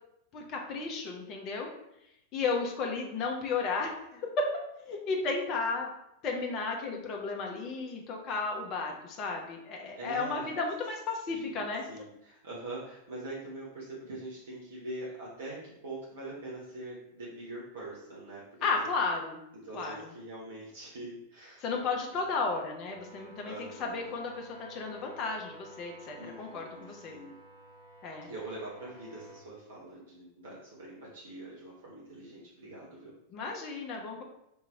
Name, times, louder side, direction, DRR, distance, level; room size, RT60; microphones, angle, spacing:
voice 1, 0.3-1.7 2.0-4.3 4.8-5.9 6.2-11.8 18.6-19.4 19.7-20.1 21.6-27.2 28.0-28.3 33.3-34.2, left 4 dB, 35° left, 1 dB, 0.7 m, -34 dB
voice 2, 10.0-10.5 11.3-11.6 11.9-18.9 19.6-21.7 22.1-22.3 23.4-24.1 26.2-27.4 28.3-33.1, right 2 dB, 60° right, -6 dB, 1.1 m, -43 dB
sound 1, 22.9-29.4, right 2 dB, 85° right, 1.6 m, -52 dB
3.6 x 2.9 x 4.4 m, 0.83 s
figure-of-eight pair, 90°, 0 cm